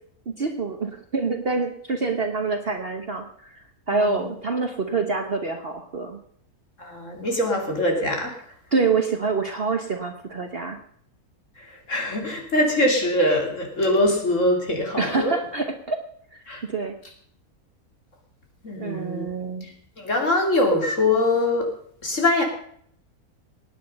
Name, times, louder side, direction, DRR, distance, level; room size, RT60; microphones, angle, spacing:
voice 1, 0.3-6.2 8.7-10.8 15.0-16.0 16.3-16.4 16.7-16.9 18.8-19.7, right 4 dB, 45° right, 5 dB, 1.3 m, -26 dB
voice 2, 3.9-4.3 6.8-8.4 11.6-15.3 16.5-16.6 18.6-19.3 19.6-21.7 22.0-22.4, left 1 dB, 55° left, 1 dB, 3.4 m, -23 dB
18.5 x 9.6 x 5.4 m, 0.65 s
omnidirectional pair, 1.6 m